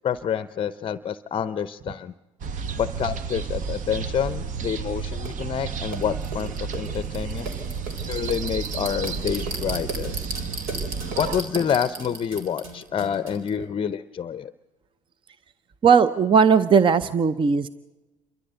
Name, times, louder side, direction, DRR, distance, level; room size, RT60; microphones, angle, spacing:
voice 1, 0.0-2.1 2.8-7.5 8.0-10.2 11.2-14.5, left 8 dB, 30° left, 15 dB, 0.6 m, -28 dB
sound 1, 2.4-11.4, right 6 dB, 50° right, 1.1 m, -31 dB
sound 2, 5.2-5.3 5.9-13.5, right 2 dB, 75° right, 4.0 m, -35 dB
voice 2, 15.8-17.7, right 6 dB, 30° right, 15 dB, 0.7 m, -17 dB
28.5 x 13.5 x 8.0 m, 1.1 s
supercardioid pair, 80°, 17 cm